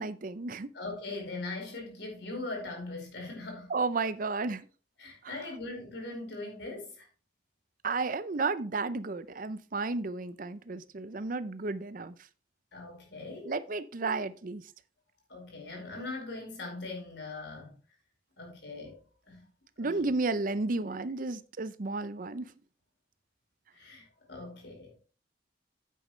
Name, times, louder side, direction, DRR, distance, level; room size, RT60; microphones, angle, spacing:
voice 1, 0.0-0.7 3.7-4.7 5.2-5.3 7.8-12.1 13.4-14.6 19.8-22.5, right 3 dB, 45° right, 0.6 m, -32 dB
voice 2, 0.7-3.7 5.0-7.1 12.7-13.5 15.3-17.8 18.4-19.0 19.3-19.4 19.8-20.1 23.7-25.0, left 2 dB, 65° left, 5.1 m, -40 dB
9.3 x 9.0 x 3.2 m
head